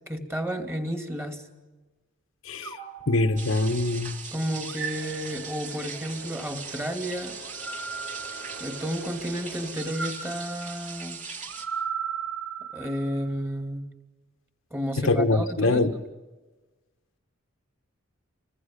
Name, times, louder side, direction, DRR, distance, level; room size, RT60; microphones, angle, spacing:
voice 1, 0.1-1.4 4.3-7.3 8.6-11.2 12.7-13.9 14.7-16.0, equal, 10° right, 6 dB, 2.7 m, -32 dB
voice 2, 2.4-2.8 3.1-4.1 15.0-15.9, left 2 dB, 70° left, 7 dB, 1.4 m, -23 dB
sound 1, 2.6-4.0 4.6-5.9 7.4-9.1 9.8-13.3, right 6 dB, 80° right, 4.8 m, -37 dB
sound 2, 3.4-11.6, right 5 dB, 40° right, 2.8 m, -40 dB
sound 3, 4.9-9.8, right 2 dB, 60° right, 6.6 m, -47 dB
30.0 x 25.0 x 5.3 m, 1.2 s
head